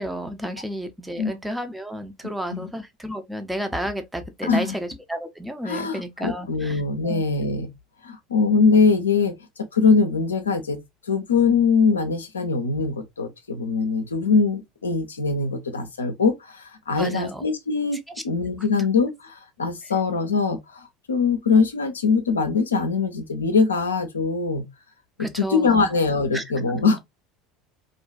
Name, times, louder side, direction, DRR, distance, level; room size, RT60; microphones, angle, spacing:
voice 1, 0.0-7.2 17.0-17.5 25.2-25.9 26.3-26.8, equal, 5° right, 0.5 m, -32 dB
voice 2, 2.2-2.7 4.4-4.7 5.6-7.7 8.0-9.3 9.7-10.8 11.1-18.0 18.2-24.6 25.2-27.0, left 4 dB, 75° left, 0.4 m, -22 dB
2.4 x 2.2 x 2.3 m
figure-of-eight pair, 70°, 0 cm